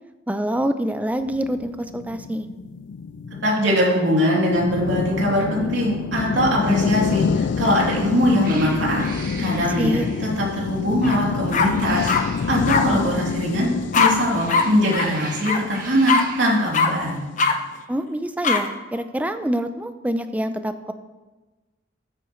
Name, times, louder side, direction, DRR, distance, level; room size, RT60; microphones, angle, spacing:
voice 1, 0.3-2.5 9.8-10.1 17.9-20.9, equal, 10° right, 9 dB, 0.5 m, -25 dB
sound 1, 1.3-16.7, left 5 dB, 65° left, 0.4 m, -27 dB
voice 2, 3.4-9.0 9.4-17.3, equal, 70° right, -3 dB, 3.0 m, -22 dB
Cat, 7.7-8.0 8.4-10.4 11.5-12.6 13.9-16.5, right 4 dB, 45° right, 1.5 m, -40 dB
sound 2, 11.0-11.2 11.5-12.2 12.7-12.8 13.9-14.1 14.5-14.6 14.9-15.1 15.4-15.6 16.1-16.2 16.7-16.9 17.4-17.5 18.4-18.6, left 5 dB, 40° left, 0.7 m, -19 dB
13.5 x 8.5 x 3.2 m, 1.2 s
head